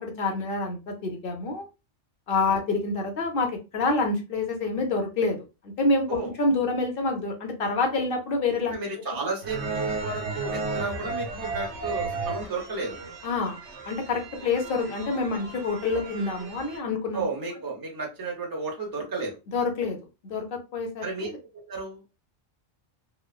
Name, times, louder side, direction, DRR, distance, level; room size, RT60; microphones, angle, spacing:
voice 1, 0.0-1.7 2.3-8.7 13.2-13.6 13.9-17.3 19.5-20.0 20.2-21.3, left 3 dB, 55° left, 3 dB, 0.8 m, -27 dB
voice 2, 8.7-13.0 17.1-19.4 21.0-22.0, right 3 dB, 25° right, 0 dB, 0.6 m, -33 dB
sound 1, 9.4-16.8, right 3 dB, 70° right, 1.1 m, -34 dB
3.1 x 2.1 x 2.3 m, 0.28 s
omnidirectional pair, 1.2 m